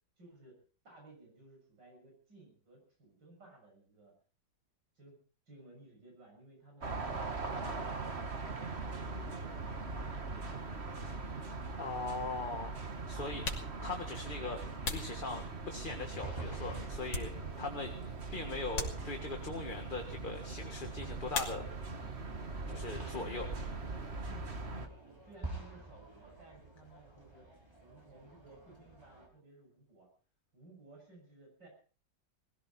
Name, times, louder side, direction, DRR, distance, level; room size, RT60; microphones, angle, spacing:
voice 1, 0.2-0.6 0.8-4.1 5.0-5.2 5.5-7.8 8.2-10.2 22.6-23.7 24.3-27.5 27.8-30.1 30.5-31.7, right 2 dB, 80° right, 1 dB, 7.6 m, -58 dB
sound 1, 6.8-24.9, right 3 dB, 40° right, 1.8 m, -41 dB
voice 2, 11.7-12.8 13.1-13.4 13.8-21.7 22.7-23.5, left 3 dB, 30° left, 4 dB, 1.7 m, -40 dB
sound 2, 13.4-15.9 16.4-17.8 18.1-18.3 18.7-19.5 21.3-22.1 22.3-23.0 23.3-25.5, left 3 dB, 80° left, 3.4 m, -42 dB
sound 3, 15.8-29.3, right 2 dB, 15° right, 5.1 m, -50 dB
20.0 x 16.0 x 4.3 m, 0.39 s
omnidirectional pair, 1.9 m